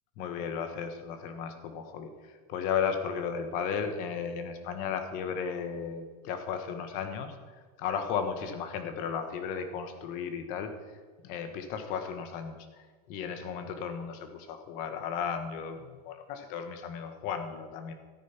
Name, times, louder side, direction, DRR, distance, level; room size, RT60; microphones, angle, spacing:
voice 1, 0.2-10.7 11.2-17.9, left 7 dB, 40° left, 8 dB, 1.4 m, -35 dB
13.5 x 9.3 x 6.0 m, 1.4 s
supercardioid pair, 175°, 21 cm